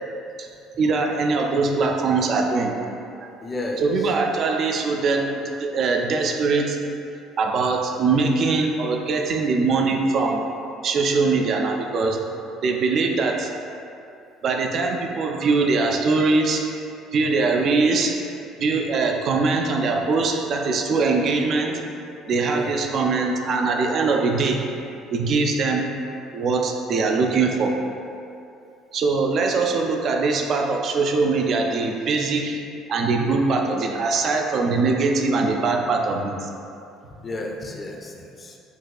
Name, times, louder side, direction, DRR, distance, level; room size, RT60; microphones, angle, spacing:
voice 1, 0.8-2.7 3.2-3.3 3.8-6.8 7.4-10.4 10.8-12.2 12.6-13.5 14.4-16.6 17.1-18.2 18.6-21.8 22.3-24.6 25.1-25.9 26.3-27.7 28.9-32.6 32.9-36.5, right 4 dB, 45° right, 2 dB, 0.4 m, -22 dB
voice 2, 3.4-4.1 22.4-22.8 33.5-33.6 33.8-33.9 37.1-38.6, left 1 dB, 30° left, 1 dB, 0.5 m, -33 dB
5.3 x 2.8 x 2.3 m, 2.6 s
figure-of-eight pair, 55°, 0 cm